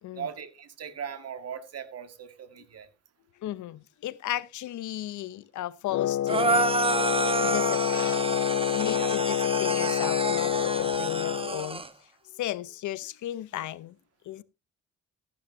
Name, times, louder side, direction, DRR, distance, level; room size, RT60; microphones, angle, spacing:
voice 1, 0.1-2.9 8.9-9.2, right 7 dB, 55° right, 2.0 m, -39 dB
voice 2, 3.4-6.7 7.4-8.3 8.7-11.8 12.3-14.0 14.3-14.4, left 13 dB, 75° left, 0.8 m, -35 dB
Wind instrument woodwind instrument, 5.9-11.6, left 12 dB, 55° left, 0.4 m, -27 dB
sound 1, 6.3-11.9, right 3 dB, 20° right, 1.2 m, -29 dB
15.0 x 10.5 x 2.7 m
cardioid pair, 90°, 30 cm